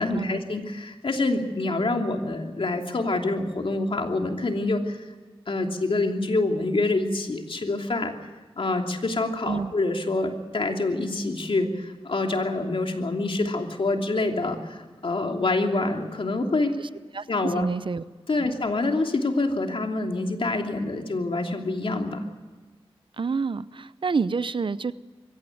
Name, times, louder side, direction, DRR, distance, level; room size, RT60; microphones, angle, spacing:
voice 1, 0.0-5.1 5.5-8.1 8.6-16.8 17.3-17.7 18.3-22.2, left 2 dB, 60° left, 3 dB, 2.9 m, -26 dB
voice 2, 17.6-18.0 18.4-18.5 23.2-24.9, right 4 dB, 55° right, 16 dB, 0.7 m, -28 dB
23.0 x 16.0 x 9.3 m, 1.3 s
cardioid pair, 55°, 10 cm